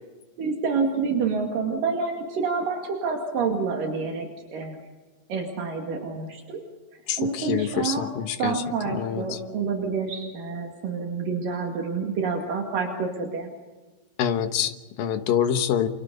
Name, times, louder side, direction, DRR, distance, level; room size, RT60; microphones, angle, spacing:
voice 1, 0.4-4.8 5.3-6.6 7.2-8.1 8.4-13.5, right 5 dB, 70° right, 1 dB, 3.9 m, -28 dB
voice 2, 7.1-9.4 14.2-15.9, left 9 dB, 80° left, 8 dB, 3.1 m, -26 dB
29.5 x 28.5 x 4.1 m, 1.2 s
omnidirectional pair, 4.0 m